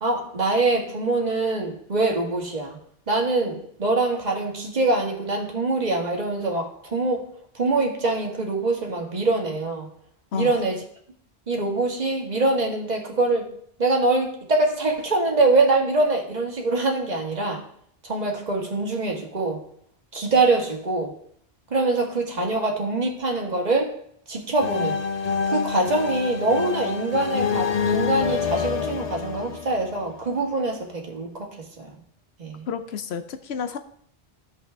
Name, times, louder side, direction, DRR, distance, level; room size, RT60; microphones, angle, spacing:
voice 1, 0.0-2.8 3.1-7.3 7.5-9.9 10.3-10.8 11.5-13.5 13.8-17.6 18.0-19.6 20.1-21.1 21.7-23.9 24.3-25.0 25.5-31.5 31.8-31.9 32.4-32.7, right 2 dB, 45° right, 1 dB, 1.6 m, -24 dB
sound 1, 24.6-30.3, left 6 dB, 45° left, 0.7 m, -27 dB
voice 2, 32.7-33.8, left 6 dB, 85° left, 9 dB, 0.9 m, -30 dB
15.0 x 5.7 x 3.4 m, 0.65 s
omnidirectional pair, 1.0 m